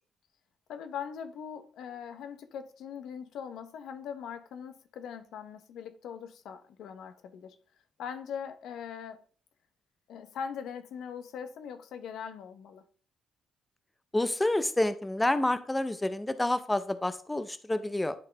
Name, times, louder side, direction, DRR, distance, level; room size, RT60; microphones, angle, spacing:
voice 1, 0.7-7.6 8.0-9.2 10.1-12.8, left 7 dB, 80° left, 0.8 m, -41 dB
voice 2, 14.1-18.1, left 1 dB, 10° left, 0.6 m, -28 dB
11.5 x 3.9 x 3.4 m
cardioid pair, 90°, 0 cm